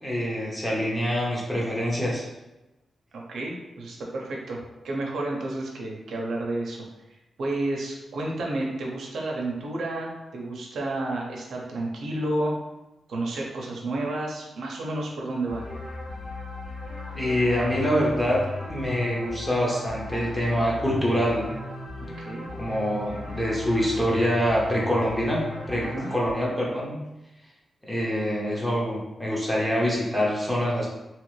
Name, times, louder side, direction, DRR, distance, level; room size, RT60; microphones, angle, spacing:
voice 1, 0.0-2.3 17.1-18.4 18.7-21.5 22.6-27.0 27.9-30.9, equal, 10° left, -4 dB, 0.8 m, -25 dB
voice 2, 3.1-6.8 7.4-12.5 13.1-15.6 22.3-22.5 25.7-26.1, right 2 dB, 85° right, -1 dB, 0.6 m, -31 dB
sound 1, 15.5-26.3, left 2 dB, 60° left, 1.1 m, -36 dB
2.9 x 2.5 x 3.2 m, 1.0 s
wide cardioid pair, 115°, 0 cm